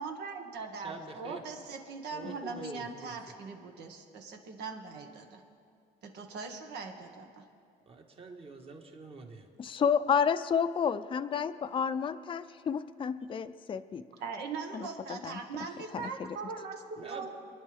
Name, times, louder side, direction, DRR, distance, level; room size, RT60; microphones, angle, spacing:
voice 1, 0.0-5.4 6.0-7.4 14.2-17.4, right 4 dB, 80° right, 4 dB, 1.6 m, -41 dB
voice 2, 0.8-1.4 2.1-3.2 7.9-9.5 17.0-17.4, right 3 dB, 35° right, 3 dB, 1.7 m, -45 dB
voice 3, 9.6-14.0 14.7-15.4 15.9-16.4, left 7 dB, 30° left, 10 dB, 0.5 m, -31 dB
26.5 x 10.0 x 3.5 m, 2.3 s
cardioid pair, 110°, 17 cm